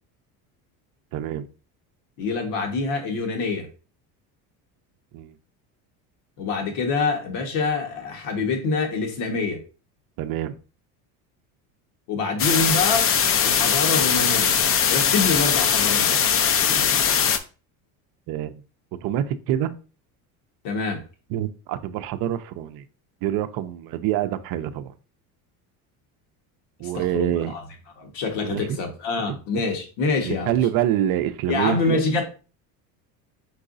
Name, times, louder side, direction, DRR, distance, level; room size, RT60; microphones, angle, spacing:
voice 1, 1.1-1.5 5.1-5.3 10.2-10.6 16.6-16.9 18.3-18.6 19.0-19.7 21.3-22.8 23.2-24.9 26.8-27.6 28.4-28.8 30.3-32.0, right 11 dB, 55° right, 0.5 m, -26 dB
voice 2, 2.2-3.7 6.4-9.6 12.1-13.1 13.4-14.5 14.9-16.2 20.6-21.0 26.9-27.6 28.0-30.5 31.5-32.3, left 3 dB, 75° left, 1.4 m, -26 dB
sound 1, 12.4-17.4, left 7 dB, 35° left, 0.5 m, -20 dB
4.7 x 3.8 x 2.5 m
supercardioid pair, 100°, 42 cm